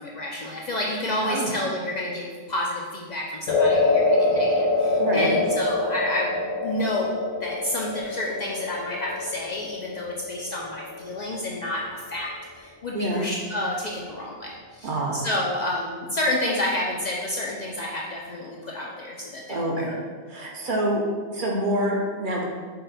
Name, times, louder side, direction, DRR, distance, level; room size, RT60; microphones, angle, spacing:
voice 1, 0.0-19.9, left 1 dB, 55° left, -3 dB, 0.5 m, -30 dB
sound 1, 3.5-11.8, left 2 dB, 85° left, 0.9 m, -25 dB
voice 2, 4.9-5.4 12.9-13.3 14.8-15.2 19.5-20.0 20.3-21.0 21.3-22.5, right 1 dB, 55° right, -1 dB, 0.8 m, -26 dB
5.5 x 2.2 x 4.0 m, 1.5 s
omnidirectional pair, 1.1 m